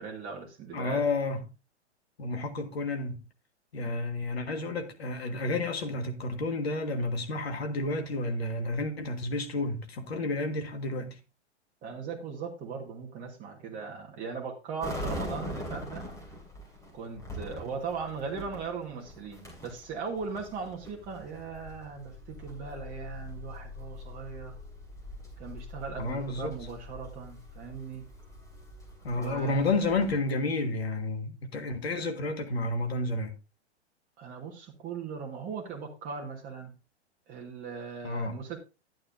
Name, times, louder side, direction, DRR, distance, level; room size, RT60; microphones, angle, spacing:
voice 1, 0.0-1.0 11.8-16.0 16.9-24.6 25.4-28.1 29.1-29.7 34.2-36.7 37.3-38.6, right 5 dB, 25° right, 1.5 m, -39 dB
voice 2, 0.7-1.4 2.2-3.3 3.7-11.2 26.0-26.6 29.0-33.4 38.0-38.4, left 2 dB, 60° left, 1.8 m, -31 dB
sound 1, 14.8-30.1, left 1 dB, 10° left, 2.9 m, -43 dB
11.5 x 9.0 x 2.7 m
figure-of-eight pair, 110°, 35 cm